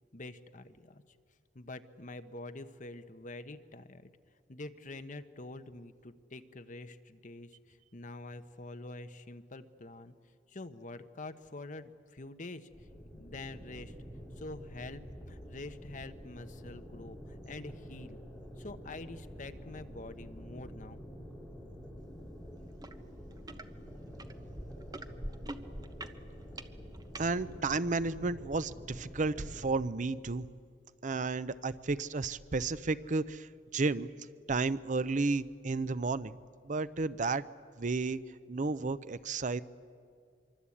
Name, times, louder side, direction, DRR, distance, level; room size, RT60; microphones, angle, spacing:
voice 1, 0.1-1.0 1.5-4.1 4.5-10.1 10.5-12.7 13.0-13.9 14.4-15.0 15.3-18.2 18.6-21.0, left 2 dB, 45° left, 9 dB, 1.0 m, -46 dB
sound 1, 12.7-29.7, equal, ahead, 5.9 m, -48 dB
sound 2, 22.8-22.9 23.3-23.6 24.2-27.3 28.0-28.1, right 1 dB, 20° right, 1.0 m, -43 dB
voice 2, 27.2-30.5 31.0-34.1 34.5-36.4 36.6-37.4 37.8-38.2 38.5-39.6, right 3 dB, 45° right, 15 dB, 0.6 m, -32 dB
25.5 x 24.0 x 8.6 m, 2.2 s
head